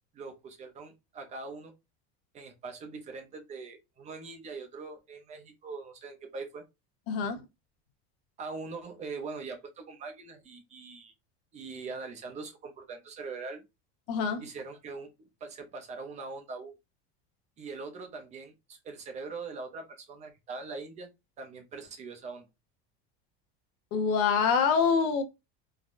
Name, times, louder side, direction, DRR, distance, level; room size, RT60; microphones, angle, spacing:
voice 1, 0.1-1.7 2.3-6.6 8.4-11.1 11.5-13.6 14.4-16.7 17.6-21.1 21.4-22.5, right 4 dB, 20° right, 0.5 m, -42 dB
voice 2, 7.1-7.4 14.1-14.4 23.9-25.2, left 6 dB, 50° left, 0.7 m, -25 dB
3.4 x 2.2 x 2.5 m
cardioid pair, 175°, 31 cm